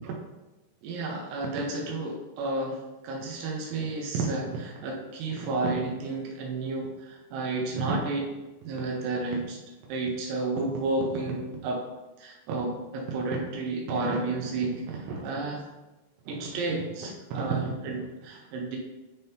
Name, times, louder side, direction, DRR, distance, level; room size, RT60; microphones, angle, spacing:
voice 1, 0.8-2.8 3.0-8.3 8.6-9.6 9.9-11.8 12.2-15.6 16.3-18.8, right 3 dB, 80° right, -1 dB, 2.9 m, -31 dB
10.5 x 3.6 x 2.8 m, 1.1 s
omnidirectional pair, 5.0 m